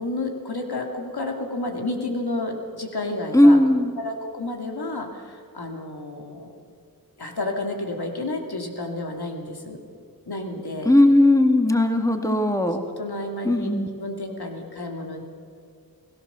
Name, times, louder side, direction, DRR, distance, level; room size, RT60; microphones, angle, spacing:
voice 1, 0.0-6.5 7.2-9.8 10.3-10.9 12.2-12.4 13.0-15.2, left 2 dB, 90° left, 2 dB, 2.7 m, -31 dB
voice 2, 3.3-3.9 10.9-12.8 13.5-13.9, left 1 dB, 10° left, 5 dB, 1.9 m, -17 dB
29.5 x 17.5 x 6.9 m, 2.3 s
wide cardioid pair, 60°, 37 cm